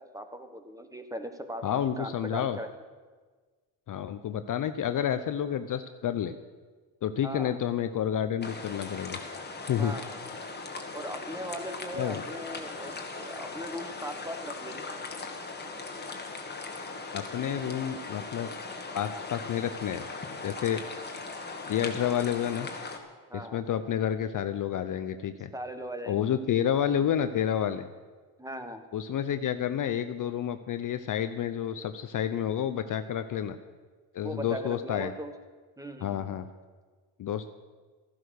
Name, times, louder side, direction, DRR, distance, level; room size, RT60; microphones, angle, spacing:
voice 1, 0.0-2.7 7.2-7.6 9.8-10.2 10.9-14.9 23.3-23.6 25.5-26.2 28.4-28.8 34.2-35.3 35.8-36.2, equal, 5° right, 8 dB, 1.3 m, -39 dB
voice 2, 1.6-2.6 3.9-6.3 7.0-9.2 9.7-9.9 11.9-12.2 17.1-18.5 18.9-20.1 20.4-20.8 21.7-22.7 23.3-25.5 26.0-27.8 28.9-33.6 34.1-35.1 36.0-36.5 37.2-37.5, left 9 dB, 45° left, 10 dB, 0.7 m, -30 dB
sound 1, 8.4-23.0, left 3 dB, 20° left, 1.8 m, -39 dB
13.5 x 11.0 x 6.5 m, 1.4 s
cardioid pair, 95°, 47 cm